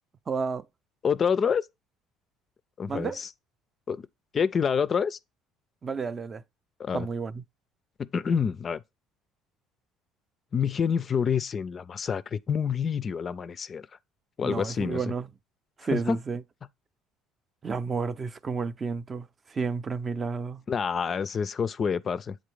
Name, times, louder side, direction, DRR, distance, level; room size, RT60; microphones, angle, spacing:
voice 1, 0.3-0.6 2.9-3.2 5.8-6.4 6.9-7.4 14.4-15.3 15.8-16.4 17.6-20.6, right 5 dB, 35° right, 0.4 m, -31 dB
voice 2, 1.0-1.7 2.8-3.3 3.9-4.1 4.3-5.2 6.8-7.1 8.0-8.8 10.5-13.9 14.4-15.0 15.9-16.2 20.7-22.4, left 6 dB, 40° left, 0.3 m, -27 dB
7.4 x 3.8 x 3.3 m
supercardioid pair, 80°, 0 cm